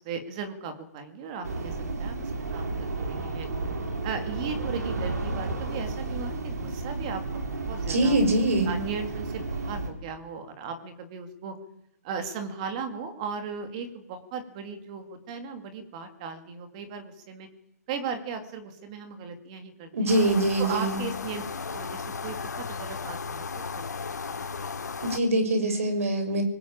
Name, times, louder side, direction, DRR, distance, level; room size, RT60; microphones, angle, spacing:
voice 1, 0.0-3.5 4.0-8.2 8.7-11.5 12.0-17.5 17.9-20.1 20.6-21.4 21.7-23.6 24.0-24.2, right 6 dB, 25° right, 8 dB, 2.4 m, -37 dB
sound 1, 1.4-9.9, right 3 dB, 75° right, 5.8 m, -32 dB
voice 2, 7.9-8.7 19.9-21.0 25.0-26.4, right 1 dB, 55° right, 6 dB, 6.4 m, -23 dB
sound 2, 20.1-25.2, left 5 dB, 85° left, 2.9 m, -35 dB
21.0 x 20.0 x 8.8 m, 0.86 s
hypercardioid pair, 170°, 9 cm